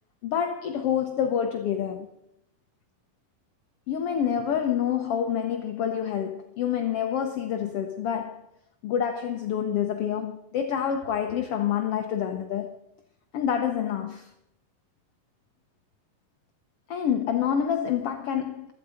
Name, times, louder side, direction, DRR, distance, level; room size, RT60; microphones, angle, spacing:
voice 1, 0.2-2.1 3.9-8.4 8.8-12.7 13.3-14.3 16.9-18.7, left 8 dB, 70° left, 1.4 m, -27 dB
16.0 x 13.0 x 5.0 m
omnidirectional pair, 3.9 m